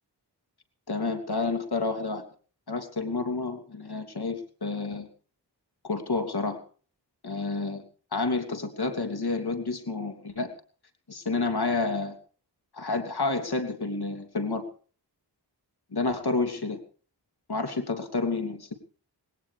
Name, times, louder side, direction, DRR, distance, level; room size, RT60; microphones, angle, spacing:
voice 1, 0.9-2.2 2.7-5.1 5.8-6.6 7.2-7.8 8.1-10.5 11.1-12.2 12.7-14.6 15.9-16.8 17.5-18.8, left 3 dB, 60° left, 5 dB, 3.0 m, -29 dB
19.5 x 18.0 x 3.4 m, 0.41 s
wide cardioid pair, 50°, 42 cm